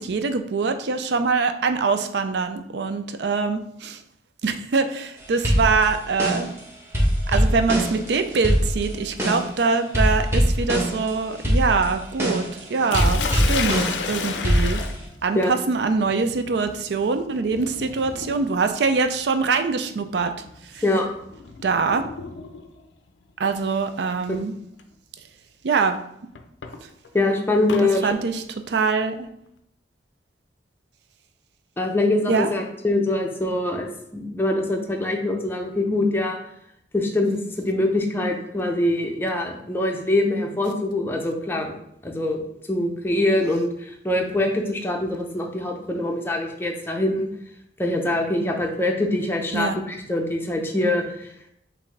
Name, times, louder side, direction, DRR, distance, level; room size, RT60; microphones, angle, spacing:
voice 1, 0.0-4.0 4.4-6.5 7.3-14.8 15.2-20.3 20.7-20.8 21.6-22.0 23.4-24.5 25.6-26.0 26.8-26.9 27.8-29.3 32.3-32.5 49.5-49.8, right 4 dB, 70° right, 8 dB, 0.4 m, -23 dB
sound 1, 5.4-6.6 6.9-9.6 9.9-11.1 11.4-14.1 14.4-15.0, equal, 15° right, 1.0 m, -22 dB
Sink (filling or washing), 12.9-22.8 24.0-24.3 24.8-24.9 26.3-27.9, left 5 dB, 85° left, 0.4 m, -33 dB
voice 2, 27.1-28.1 31.8-36.4 36.9-41.7 42.0-42.4 42.7-47.3 47.8-51.3, left 1 dB, 15° left, 1 dB, 0.6 m, -24 dB
5.6 x 2.6 x 3.2 m, 0.75 s
head